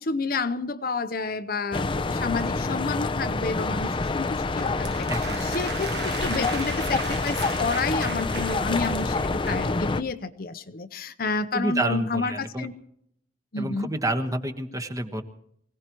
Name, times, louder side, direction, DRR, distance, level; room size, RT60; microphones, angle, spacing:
voice 1, 0.0-12.7 13.5-13.9, left 4 dB, 55° left, 10 dB, 0.8 m, -30 dB
sound 1, 1.7-10.0, left 3 dB, 30° left, 0.6 m, -27 dB
sound 2, 4.6-9.7, right 5 dB, 65° right, 1.3 m, -38 dB
voice 2, 5.1-5.6 11.5-12.7 13.6-15.2, right 1 dB, 20° right, 5 dB, 1.3 m, -29 dB
24.5 x 17.5 x 3.1 m, 0.72 s
head